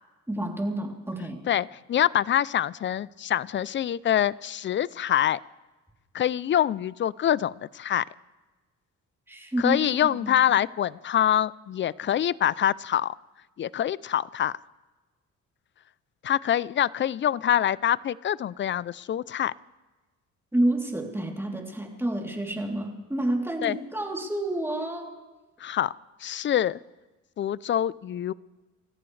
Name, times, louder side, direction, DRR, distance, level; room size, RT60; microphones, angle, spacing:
voice 1, 0.3-1.4 9.3-10.5 20.5-25.1, right 1 dB, 10° right, 0 dB, 3.2 m, -29 dB
voice 2, 1.5-5.4 6.1-8.0 9.6-13.2 13.6-14.5 16.2-19.5 23.6-23.8 25.6-25.9 26.2-26.8 27.4-28.3, left 10 dB, 40° left, 21 dB, 0.4 m, -25 dB
30.0 x 14.0 x 3.3 m, 1.2 s
cardioid pair, 90°, 30 cm